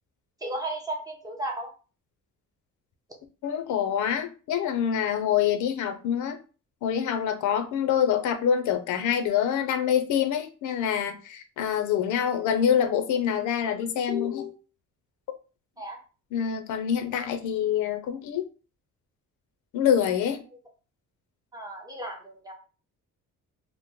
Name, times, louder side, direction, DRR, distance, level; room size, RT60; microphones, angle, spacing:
voice 1, 0.4-1.7 15.8-16.0 21.5-22.5, right 1 dB, 10° right, 0.4 m, -34 dB
voice 2, 3.4-6.4 6.8-14.6 16.3-18.4 19.7-20.4, left 8 dB, 65° left, 0.5 m, -26 dB
3.0 x 2.1 x 3.5 m
cardioid pair, 175°, 33 cm